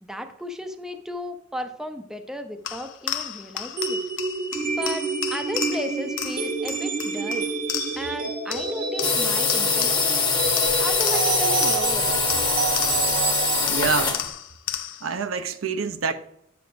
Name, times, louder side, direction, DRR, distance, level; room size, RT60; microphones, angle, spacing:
voice 1, 0.0-4.0 4.7-5.0 5.3-7.5 8.0-10.3 10.8-12.2, equal, 5° right, 0.5 m, -34 dB
sound 1, 2.7-8.2 8.5-10.2 10.6-13.3 13.7-15.2, left 11 dB, 65° left, 0.5 m, -34 dB
sound 2, 3.8-13.7, right 4 dB, 45° right, 0.8 m, -28 dB
sound 3, 9.0-14.3, left 5 dB, 20° left, 0.9 m, -23 dB
voice 2, 13.7-14.2 15.0-16.1, right 5 dB, 80° right, 0.6 m, -26 dB
9.2 x 6.9 x 2.5 m
head